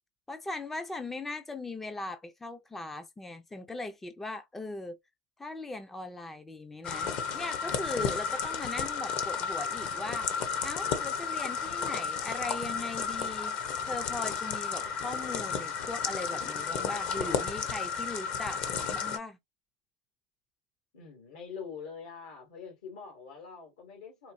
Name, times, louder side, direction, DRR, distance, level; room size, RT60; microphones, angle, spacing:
voice 1, 0.3-5.0 5.4-10.3 10.6-13.6 13.9-18.6 18.9-19.4, left 2 dB, 10° left, 0.4 m, -39 dB
sound 1, 6.8-19.2, left 6 dB, 45° left, 0.8 m, -33 dB
voice 2, 20.9-24.3, left 6 dB, 85° left, 2.4 m, -44 dB
4.3 x 2.5 x 2.6 m
supercardioid pair, 140°, 3 cm